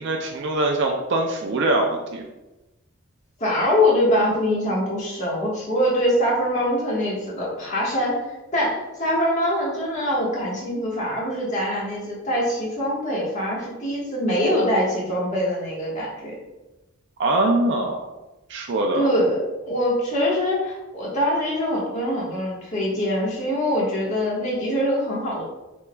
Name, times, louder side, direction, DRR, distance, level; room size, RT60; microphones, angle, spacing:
voice 1, 0.0-2.2 17.2-18.1 18.5-19.1, right 2 dB, 55° right, 2 dB, 0.4 m, -23 dB
voice 2, 3.4-8.2 8.5-16.3 18.9-25.4, equal, 35° left, -5 dB, 1.5 m, -23 dB
5.8 x 3.5 x 2.3 m, 1.0 s
head